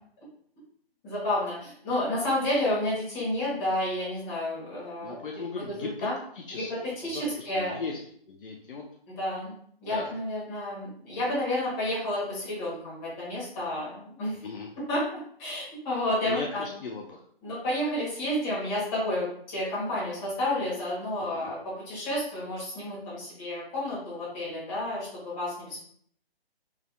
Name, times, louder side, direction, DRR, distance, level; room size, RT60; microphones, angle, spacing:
voice 1, 1.0-6.2 6.5-7.8 9.1-14.4 14.9-16.7 17.4-25.8, left 1 dB, 20° left, -8 dB, 1.7 m, -31 dB
voice 2, 5.0-6.1 6.4-6.7 7.0-8.0 8.3-8.8 9.9-10.1 14.4-14.7 16.3-17.2 21.2-21.5, left 4 dB, 60° left, 0 dB, 0.6 m, -38 dB
4.8 x 3.4 x 2.2 m, 0.63 s
hypercardioid pair, 155°, 31 cm